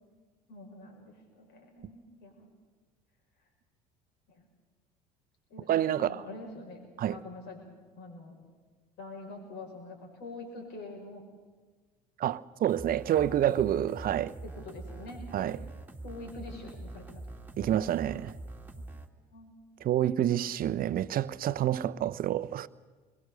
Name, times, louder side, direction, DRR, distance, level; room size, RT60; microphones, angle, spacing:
voice 1, 0.5-2.5 4.3-4.5 5.5-6.9 7.1-7.6 8.0-8.4 9.0-11.2 12.9-13.7 14.4-15.5 16.0-17.1 19.3-19.6, left 2 dB, 55° left, 5.7 m, -45 dB
voice 2, 5.7-6.2 7.0-7.2 12.2-14.3 15.3-15.6 17.6-18.4 19.8-22.7, right 11 dB, 45° right, 0.8 m, -28 dB
sound 1, 12.7-19.1, right 2 dB, 10° right, 2.6 m, -44 dB
27.0 x 21.5 x 6.8 m
hypercardioid pair, 65°, 20 cm